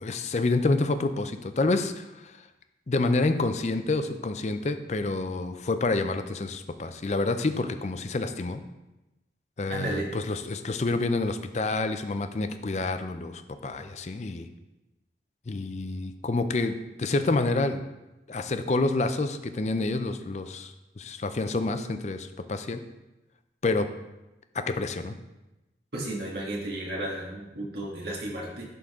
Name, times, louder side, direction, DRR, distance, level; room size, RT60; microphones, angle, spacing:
voice 1, 0.0-2.1 2.9-8.6 9.6-14.5 15.5-17.8 18.3-22.8 23.6-23.9 24.5-25.2, left 2 dB, 40° left, 9 dB, 0.4 m, -28 dB
voice 2, 9.7-10.1 25.9-28.7, right 1 dB, 65° right, -2 dB, 1.9 m, -33 dB
11.0 x 3.9 x 3.6 m, 1.0 s
head